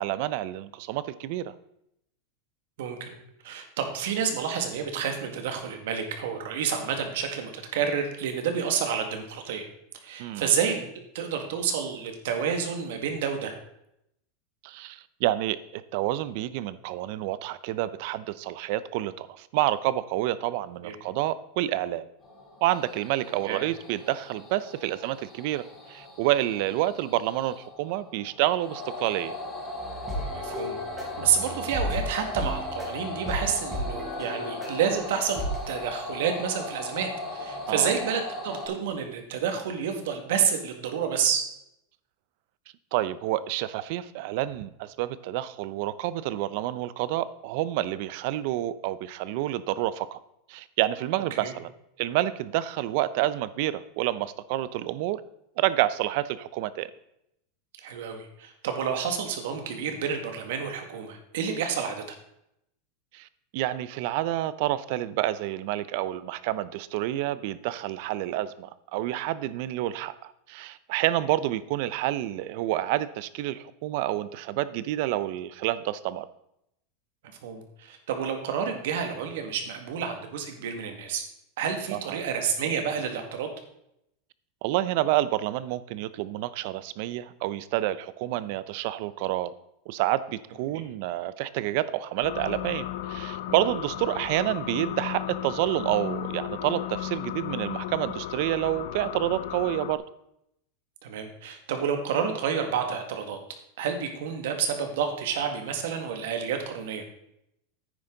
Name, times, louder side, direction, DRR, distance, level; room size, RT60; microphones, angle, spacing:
voice 1, 0.0-1.5 10.2-10.5 14.6-22.1 22.6-29.3 37.7-37.9 42.9-50.2 50.5-51.7 52.0-55.2 55.6-56.9 63.1-63.3 63.5-76.3 81.9-82.2 84.6-89.5 89.9-100.0, right 14 dB, 55° right, 16 dB, 0.6 m, -28 dB
voice 2, 2.8-3.1 3.4-9.7 10.0-10.9 11.1-13.5 20.8-20.9 23.4-23.6 30.3-30.8 31.2-41.4 51.3-51.5 57.8-62.0 77.4-81.2 81.6-83.5 90.7-90.8 101.0-103.4 103.8-107.0, right 7 dB, 75° right, 5 dB, 1.9 m, -29 dB
sound 1, 22.2-38.7, left 2 dB, 10° left, 4.4 m, -38 dB
sound 2, 29.8-35.7, equal, 10° right, 3.2 m, -34 dB
sound 3, 92.2-100.0, left 13 dB, 75° left, 0.6 m, -35 dB
9.8 x 9.5 x 3.9 m, 0.79 s
supercardioid pair, 160°, 0 cm